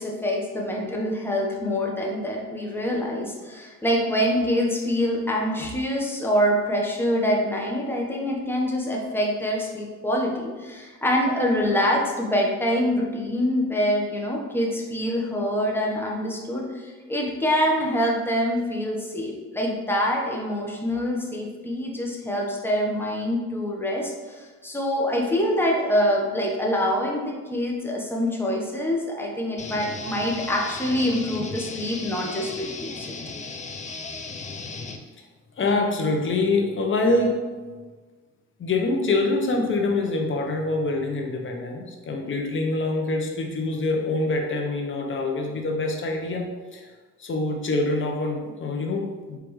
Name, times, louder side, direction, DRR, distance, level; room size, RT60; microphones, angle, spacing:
voice 1, 0.0-33.2, equal, 5° left, -2 dB, 1.0 m, -25 dB
sound 1, 29.6-35.0, left 4 dB, 25° left, 0.5 m, -36 dB
voice 2, 35.6-37.4 38.6-46.4 46.7-46.9 47.2-49.4, left 2 dB, 40° left, 2 dB, 0.8 m, -25 dB
4.9 x 3.3 x 3.1 m, 1.4 s
cardioid pair, 90°, 30 cm